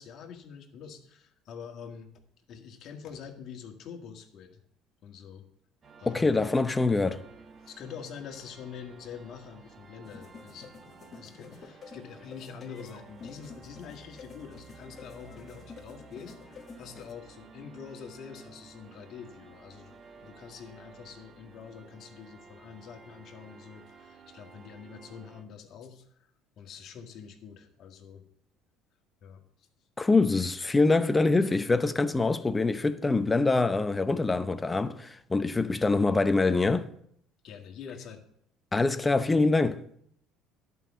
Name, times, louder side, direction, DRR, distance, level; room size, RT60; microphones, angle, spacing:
voice 1, 0.0-2.1 2.5-4.6 5.0-5.4 6.0-6.4 7.6-10.7 11.1-26.3 26.6-28.2 29.2-29.7 37.4-38.2, left 7 dB, 60° left, 1.8 m, -45 dB
sound 1, 5.8-25.4, right 4 dB, 40° right, 1.5 m, -53 dB
voice 2, 6.1-7.2 30.0-36.9 38.7-39.8, left 3 dB, 20° left, 0.8 m, -24 dB
sound 2, 10.0-17.1, left 5 dB, 40° left, 1.8 m, -49 dB
11.0 x 5.6 x 7.1 m
supercardioid pair, 85°, 0 cm